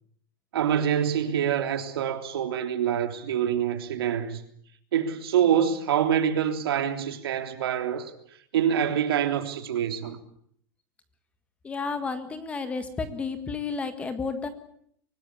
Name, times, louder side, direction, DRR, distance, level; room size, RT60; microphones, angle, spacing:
voice 1, 0.5-4.4 4.9-8.1 8.5-10.2, right 9 dB, 85° right, 3.4 m, -25 dB
voice 2, 11.6-14.5, left 4 dB, 10° left, 1.6 m, -31 dB
24.5 x 18.5 x 8.5 m
supercardioid pair, 170°, 12 cm